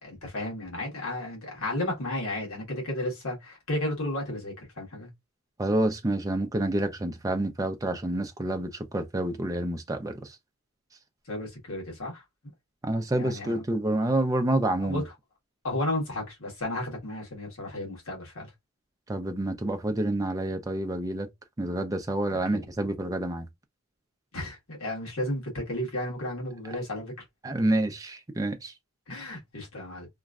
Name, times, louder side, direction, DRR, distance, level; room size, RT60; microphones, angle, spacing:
voice 1, 0.0-5.1 11.3-12.2 13.2-13.6 14.8-15.0 15.6-18.5 22.3-22.6 24.3-27.1 29.1-30.1, left 1 dB, 75° left, 1.4 m, -33 dB
voice 2, 5.6-10.4 12.8-15.0 19.1-21.3 21.6-23.5 27.4-28.7, right 1 dB, 15° right, 0.4 m, -28 dB
3.0 x 2.5 x 2.3 m
head